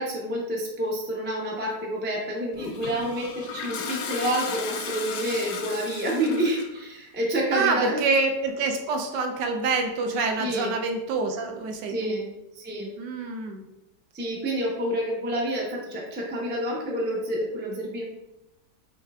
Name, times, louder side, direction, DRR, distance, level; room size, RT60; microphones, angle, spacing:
voice 1, 0.0-8.0 10.4-10.7 11.9-12.3 12.5-12.9 14.1-18.0, right 1 dB, 15° right, -4 dB, 0.3 m, -28 dB
Toilet flush, 2.5-6.8, left 6 dB, 70° left, 0.9 m, -35 dB
voice 2, 7.5-12.3 13.0-13.6, right 3 dB, 75° right, 3 dB, 1.2 m, -26 dB
5.5 x 3.3 x 2.3 m, 0.93 s
omnidirectional pair, 1.9 m